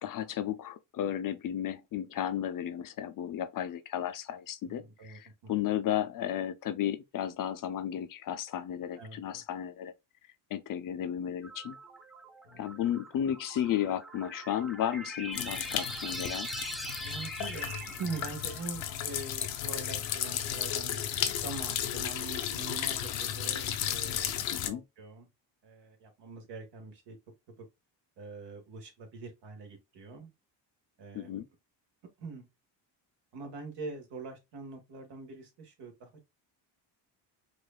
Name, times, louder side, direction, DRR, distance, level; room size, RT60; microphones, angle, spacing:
voice 1, 0.0-9.9 10.5-11.8 12.6-16.5 24.5-24.8 31.1-31.5, left 10 dB, 50° left, 0.5 m, -34 dB
voice 2, 4.6-5.7 8.9-9.4 12.4-12.6 17.0-24.3 24.6-25.3 25.6-27.2 27.6-27.7 28.2-30.3 31.0-31.4 32.2-32.5 33.3-36.3, right 3 dB, 70° right, 1.6 m, -44 dB
sound 1, 11.4-19.6, equal, ahead, 0.5 m, -42 dB
sound 2, 15.3-24.7, left 10 dB, 85° left, 0.8 m, -34 dB
4.8 x 2.5 x 2.2 m
cardioid pair, 120°, 44 cm